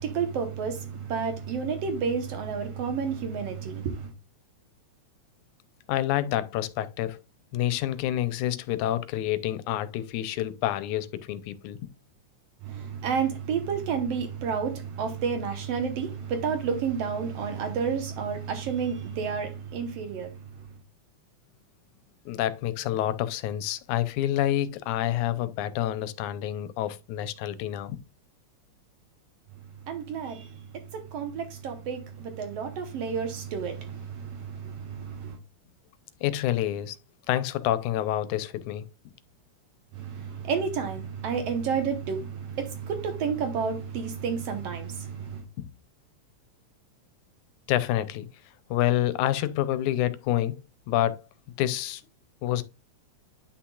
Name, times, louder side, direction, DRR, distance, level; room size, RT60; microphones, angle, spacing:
voice 1, 0.0-4.1 12.6-20.7 29.8-35.4 39.9-45.4, right 6 dB, 65° right, 1.9 m, -31 dB
voice 2, 5.9-7.2 7.5-11.9 22.3-28.0 36.2-37.0 37.3-38.9 45.6-45.7 47.7-48.3 48.7-50.6 50.9-51.2 51.6-52.0 52.4-52.6, left 13 dB, 90° left, 2.1 m, -28 dB
9.9 x 5.9 x 2.3 m
omnidirectional pair, 3.4 m